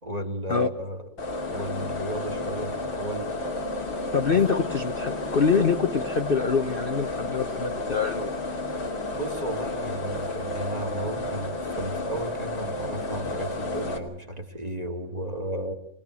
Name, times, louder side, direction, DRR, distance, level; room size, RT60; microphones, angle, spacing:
voice 1, 0.0-1.0 1.5-3.3 9.1-15.7, right 1 dB, 20° right, 5 dB, 1.9 m, -34 dB
sound 1, 1.2-14.0, left 2 dB, 90° left, 3.6 m, -31 dB
voice 2, 4.1-8.3, left 5 dB, 40° left, 7 dB, 0.9 m, -25 dB
24.5 x 20.0 x 7.7 m, 0.70 s
omnidirectional pair, 2.1 m